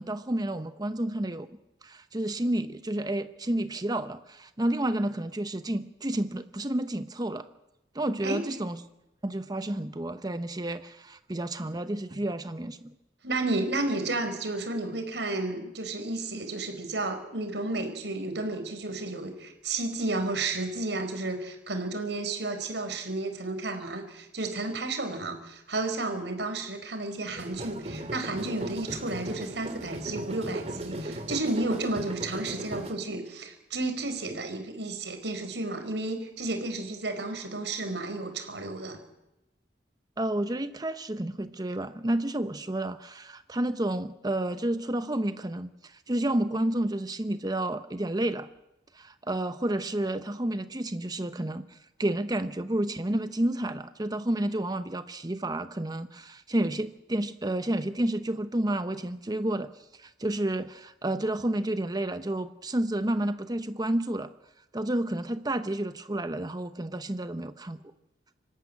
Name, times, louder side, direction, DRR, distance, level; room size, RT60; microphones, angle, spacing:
voice 1, 0.0-1.5 1.8-7.5 7.9-8.8 9.2-12.9 40.2-48.5 48.9-64.3 64.7-67.8, right 1 dB, 25° right, 10 dB, 0.9 m, -30 dB
voice 2, 13.2-39.0, right 2 dB, 85° right, 6 dB, 4.6 m, -32 dB
sound 1, 27.4-32.9, right 1 dB, 40° right, 2.7 m, -37 dB
26.0 x 14.5 x 9.9 m, 0.92 s
head